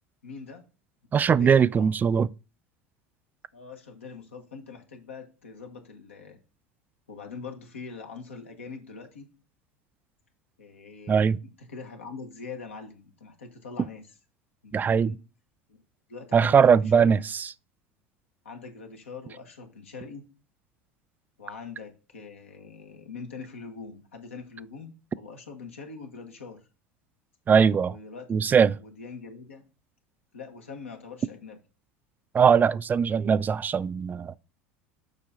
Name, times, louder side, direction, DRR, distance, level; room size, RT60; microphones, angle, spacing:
voice 1, 0.2-0.6 1.4-1.9 3.5-6.4 7.1-9.3 10.6-14.0 14.6-15.2 15.7-15.8 16.1-17.1 18.4-20.3 21.4-26.6 27.9-28.5 28.7-29.6 30.3-31.6, left 5 dB, 90° left, 1.4 m, -43 dB
voice 2, 1.1-2.3 11.1-11.4 14.7-15.2 16.3-17.2 27.5-28.0 28.3-28.7 32.3-34.4, right 6 dB, 25° right, 0.3 m, -20 dB
7.3 x 5.5 x 3.7 m
hypercardioid pair, 80°, 7 cm